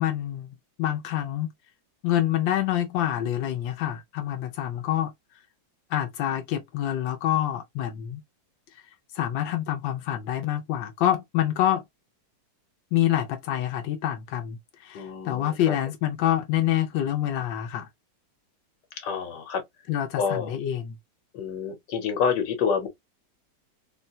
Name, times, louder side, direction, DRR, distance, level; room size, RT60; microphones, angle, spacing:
voice 1, 0.0-1.5 2.0-5.1 5.9-8.2 9.1-11.8 12.9-17.9 19.9-21.0, left 12 dB, 90° left, 1.4 m, -27 dB
voice 2, 14.9-15.7 19.0-19.6 20.2-20.5 21.3-22.9, left 6 dB, 70° left, 1.6 m, -28 dB
4.1 x 2.2 x 2.6 m
omnidirectional pair, 2.0 m